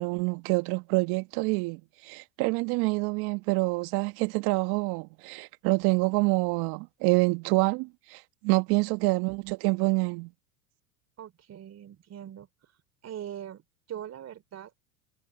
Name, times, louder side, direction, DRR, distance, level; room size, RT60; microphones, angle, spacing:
voice 1, 0.0-10.3, right 27 dB, 55° right, 1.7 m, -27 dB
voice 2, 11.2-12.5 13.0-13.6 13.9-14.7, right 10 dB, 35° right, 3.3 m, -41 dB
hypercardioid pair, 95°, 47 cm